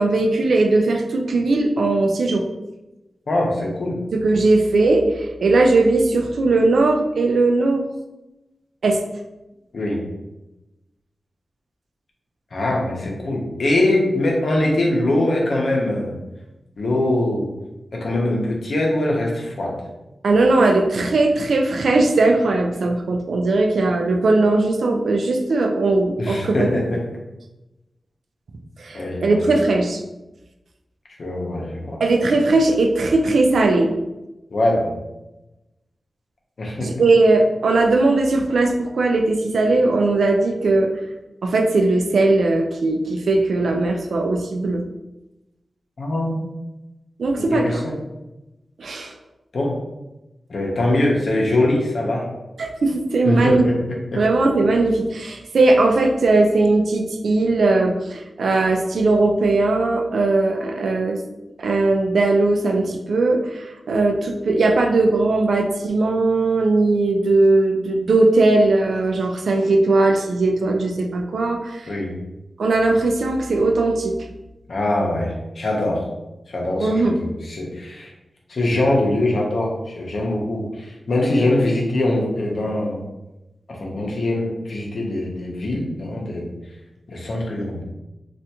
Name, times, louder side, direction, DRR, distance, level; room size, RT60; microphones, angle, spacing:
voice 1, 0.0-2.4 4.2-7.9 8.8-9.0 20.2-26.8 28.8-30.0 32.0-33.9 36.8-40.9 41.4-44.8 47.2-47.8 48.8-49.1 52.6-53.6 54.2-61.2 61.6-71.9 72.6-74.1 76.8-77.1, right 2 dB, 85° right, 3 dB, 0.3 m, -18 dB
voice 2, 3.3-4.0 9.7-10.0 12.5-16.2 16.8-17.5 17.9-19.8 26.2-27.0 28.9-29.4 31.2-32.0 34.5-34.9 36.6-36.9 46.0-46.4 47.3-48.0 49.5-49.8 50.5-52.3 53.2-53.8 54.1-54.2 71.9-72.1 74.7-76.0 76.5-78.1 78.5-83.0 83.7-86.5 87.1-87.8, left 1 dB, 70° left, -2 dB, 0.7 m, -22 dB
3.4 x 2.4 x 2.8 m, 0.99 s
wide cardioid pair, 115°, 0 cm